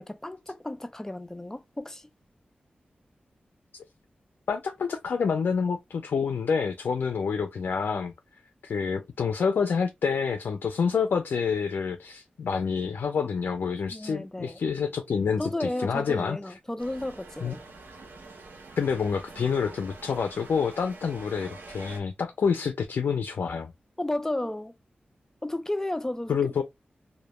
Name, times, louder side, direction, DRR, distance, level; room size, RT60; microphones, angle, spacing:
voice 1, 0.0-2.1 13.9-14.6 15.4-17.6 24.0-24.7 25.4-26.6, left 1 dB, 15° left, 0.4 m, -33 dB
voice 2, 4.5-8.1 8.6-16.4 17.4-17.5 18.8-23.7 26.3-26.6, left 6 dB, 85° left, 0.3 m, -28 dB
sound 1, 16.8-22.0, right 3 dB, 85° right, 0.6 m, -46 dB
2.1 x 2.1 x 2.9 m
wide cardioid pair, 90°, 3 cm